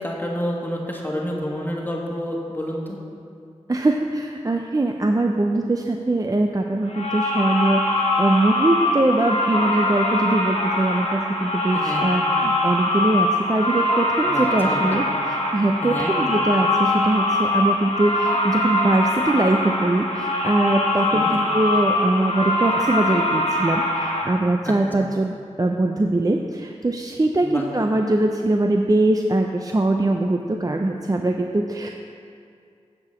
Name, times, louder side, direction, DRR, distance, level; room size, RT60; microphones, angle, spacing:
voice 1, 0.0-3.0 11.7-12.2 14.2-15.0 15.8-16.1 21.1-21.3 24.6-25.1 27.4-27.7, equal, 15° left, -2 dB, 1.4 m, -29 dB
voice 2, 3.7-31.9, right 2 dB, 30° right, 3 dB, 0.5 m, -22 dB
sound 1, 6.9-24.2, left 1 dB, 65° left, 1.7 m, -23 dB
9.5 x 4.9 x 7.0 m, 2.3 s
wide cardioid pair, 60°, 12 cm